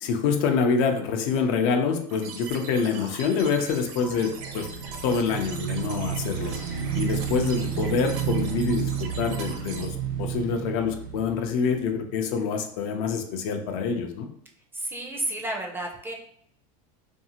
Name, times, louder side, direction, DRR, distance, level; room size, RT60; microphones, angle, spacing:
voice 1, 0.0-4.7 5.0-6.6 6.9-9.9 10.2-14.3, left 5 dB, 65° left, 5 dB, 0.5 m, -26 dB
sound 1, 2.1-9.9, right 4 dB, 65° right, 0.6 m, -41 dB
Motorcycle / Engine, 3.6-12.1, right 9 dB, 85° right, 1.0 m, -31 dB
voice 2, 14.7-16.1, right 1 dB, 10° right, 0 dB, 0.4 m, -31 dB
2.6 x 2.4 x 2.8 m, 0.66 s
supercardioid pair, 125°, 19 cm